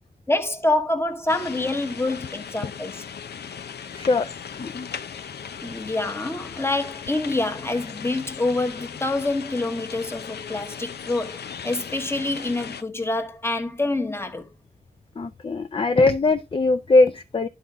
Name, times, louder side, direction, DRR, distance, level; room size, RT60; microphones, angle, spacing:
voice 1, 0.3-3.0 5.6-14.5, left 2 dB, 15° left, 1.1 m, -26 dB
sound 1, 1.3-12.8, left 7 dB, 85° left, 0.6 m, -37 dB
voice 2, 3.9-4.3 4.6-4.9 15.2-17.5, left 3 dB, 30° left, 0.5 m, -20 dB
11.5 x 4.0 x 3.4 m
wide cardioid pair, 95°, 16 cm